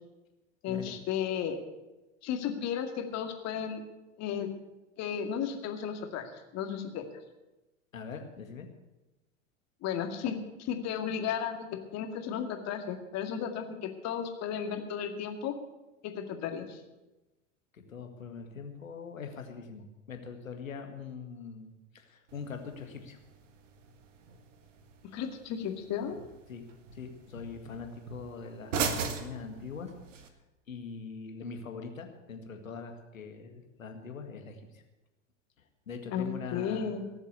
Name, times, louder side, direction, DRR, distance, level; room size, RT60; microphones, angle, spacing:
voice 1, 0.6-1.6 2.2-3.8 4.2-4.5 5.0-7.0 9.8-15.6 16.0-16.8 25.1-26.2 36.1-37.0, left 8 dB, 40° left, 5 dB, 2.2 m, -34 dB
voice 2, 7.9-8.7 17.7-23.2 26.5-26.6 26.9-30.2 30.7-34.8 35.9-37.0, left 5 dB, 85° left, 5 dB, 2.0 m, -43 dB
sound 1, 22.3-30.3, right 5 dB, 70° right, 1.7 m, -40 dB
18.0 x 7.2 x 8.3 m, 1.0 s
hypercardioid pair, 90°, 39 cm